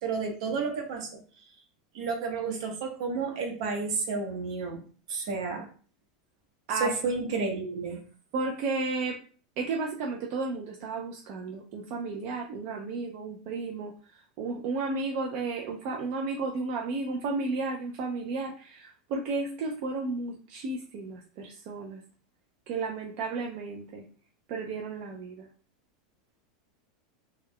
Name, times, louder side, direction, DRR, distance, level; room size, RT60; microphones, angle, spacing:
voice 1, 0.0-1.2 1.9-4.8 5.1-5.7 6.8-8.0, right 4 dB, 70° right, 3 dB, 0.8 m, -31 dB
voice 2, 8.3-9.2 9.6-13.9 14.4-22.0 22.7-24.0 24.5-25.5, right 3 dB, 50° right, 0 dB, 0.4 m, -33 dB
2.3 x 2.1 x 3.4 m, 0.41 s
supercardioid pair, 140°, 3 cm